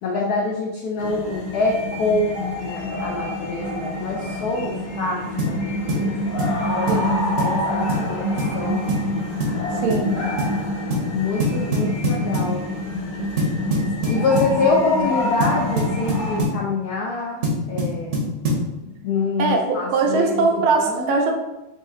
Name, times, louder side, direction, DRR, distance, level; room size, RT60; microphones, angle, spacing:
voice 1, 0.0-2.3 2.6-6.4 6.7-6.9 7.4-8.3 8.5-8.8 9.8-10.2 11.1-12.6 14.1-18.2 19.0-20.4 20.8-21.2, left 3 dB, 80° left, -1 dB, 0.8 m, -25 dB
sound 1, 1.0-16.4, left 1 dB, 60° left, 1.6 m, -27 dB
sound 2, 5.4-5.6 5.9-6.1 6.4-6.6 6.9-7.0 7.4-7.6 7.9-8.1 8.4-8.6 8.9-9.1 9.4-9.6 9.9-10.1 10.4-10.6 10.9-11.1 11.4-12.5 13.4-14.6 15.4-16.6 17.4-18.7, equal, 50° right, 0.9 m, -23 dB
voice 2, 6.9-7.3 9.8-10.3 14.0-14.5 14.7-14.8 19.4-21.3, right 4 dB, 80° right, 2 dB, 1.5 m, -22 dB
4.1 x 2.5 x 3.7 m, 0.99 s
omnidirectional pair, 2.2 m